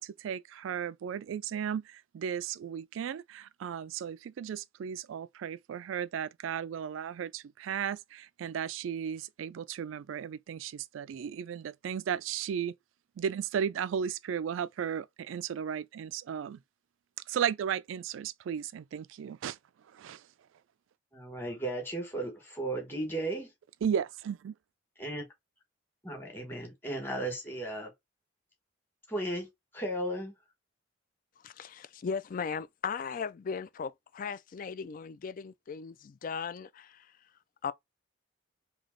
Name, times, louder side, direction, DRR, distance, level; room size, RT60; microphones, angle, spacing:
voice 1, 0.0-12.7 13.2-16.6 17.3-19.6 19.9-20.3 23.8-24.5, right 8 dB, 80° right, 0.3 m, -35 dB
voice 2, 21.1-23.5 25.0-25.3 26.0-27.9 29.1-29.5 29.7-30.3, right 1 dB, 10° left, 1.3 m, -35 dB
voice 3, 31.4-37.1 37.6-37.7, left 6 dB, 45° left, 0.3 m, -37 dB
3.4 x 2.8 x 3.7 m
head